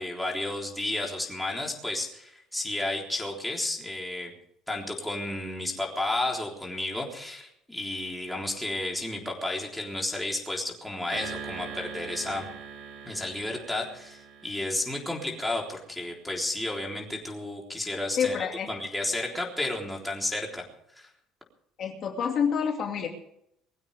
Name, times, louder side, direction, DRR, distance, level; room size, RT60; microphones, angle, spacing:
voice 1, 0.0-4.3 4.7-12.5 13.0-18.4 18.7-20.6 21.0-21.1, left 1 dB, 5° left, -2 dB, 3.8 m, -32 dB
sound 1, 11.1-15.6, right 6 dB, 60° right, 3.7 m, -42 dB
voice 2, 18.2-18.7 21.8-23.1, left 7 dB, 35° left, 2 dB, 2.4 m, -27 dB
21.5 x 16.0 x 3.6 m, 0.74 s
cardioid pair, 170°, 0 cm